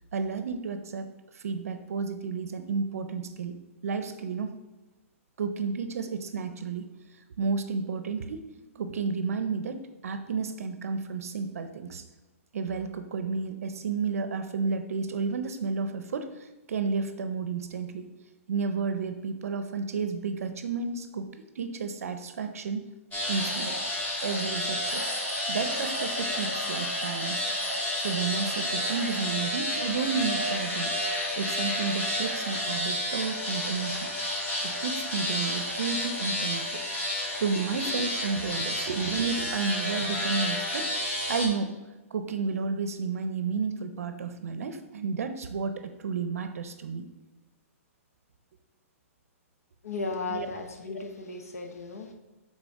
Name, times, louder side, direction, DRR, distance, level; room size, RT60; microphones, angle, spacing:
voice 1, 0.1-3.6 3.8-4.6 5.4-6.9 7.4-8.5 8.8-12.0 12.5-18.1 18.5-21.3 21.6-22.8 23.3-23.8 24.2-25.2 25.5-27.4 27.9-31.0 31.4-34.1 34.6-36.8 37.4-41.0 41.3-41.8 42.1-47.1 50.3-50.5, right 5 dB, 80° right, 9 dB, 0.5 m, -32 dB
sound 1, 23.1-41.5, left 1 dB, 20° left, 2.0 m, -30 dB
voice 2, 49.8-52.1, left 3 dB, 90° left, 3 dB, 1.0 m, -35 dB
6.9 x 4.0 x 3.6 m, 1.1 s
hypercardioid pair, 140°, 8 cm